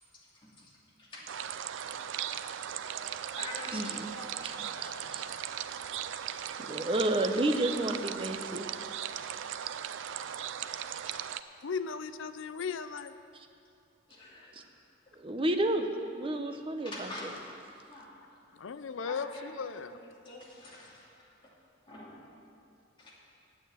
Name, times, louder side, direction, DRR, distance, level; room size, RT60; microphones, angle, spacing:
voice 1, 0.4-0.7 1.0-1.4 1.9-2.0 2.6-5.1 5.4-5.7 14.1-14.7 16.4-16.5 16.8-17.4 17.9-18.4 19.1-21.3 21.9-22.2 23.0-23.1, left 1 dB, 25° left, -6 dB, 2.5 m, -47 dB
sound 1, 1.3-11.4, right 9 dB, 65° right, 0.4 m, -38 dB
voice 2, 3.7-4.1 4.8-5.3 6.6-8.7 14.5-14.6 15.2-17.3, right 1 dB, 25° right, 5 dB, 0.7 m, -31 dB
voice 3, 10.9-11.2 11.6-13.1 18.5-20.0, left 5 dB, 70° left, 11 dB, 0.5 m, -37 dB
9.2 x 8.6 x 8.1 m, 2.5 s
head